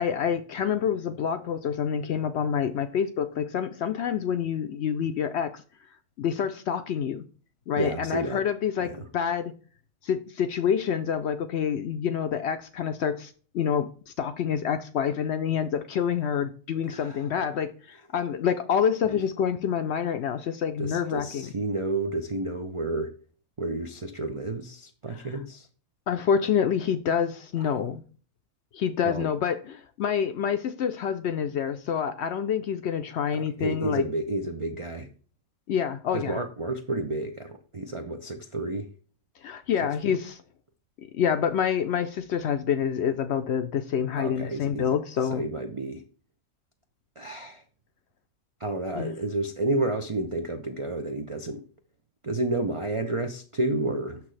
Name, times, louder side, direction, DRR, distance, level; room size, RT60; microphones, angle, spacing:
voice 1, 0.0-5.6 6.2-7.2 7.7-9.5 10.0-13.9 14.2-21.5 26.1-28.0 28.7-34.0 35.7-36.4 39.4-40.4 41.2-45.4 48.9-49.1, left 8 dB, 65° left, 0.7 m, -27 dB
voice 2, 7.8-8.4 8.8-9.1 16.8-17.3 19.1-19.2 20.8-23.1 23.6-25.7 27.6-27.7 29.0-29.3 33.3-35.1 36.1-38.9 40.0-40.2 44.2-44.9 45.2-46.0 47.2-47.6 48.6-51.6 52.2-54.2, right 2 dB, 50° right, 0.3 m, -31 dB
6.6 x 6.0 x 3.2 m
omnidirectional pair, 1.4 m